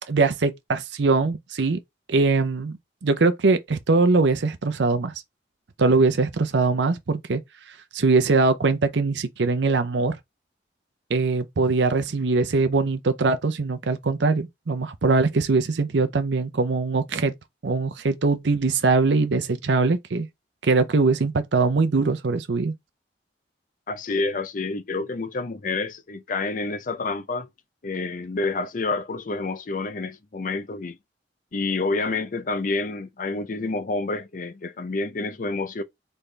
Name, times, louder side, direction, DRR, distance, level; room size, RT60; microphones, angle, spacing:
voice 1, 0.1-1.8 2.1-2.8 3.0-5.1 5.8-7.4 7.9-10.2 11.1-17.3 17.6-20.3 20.6-22.7, right 3 dB, 80° right, 0.6 m, -22 dB
voice 2, 23.9-27.5 27.8-31.0 31.5-35.8, left 3 dB, 50° left, 0.5 m, -28 dB
4.2 x 3.4 x 3.3 m
head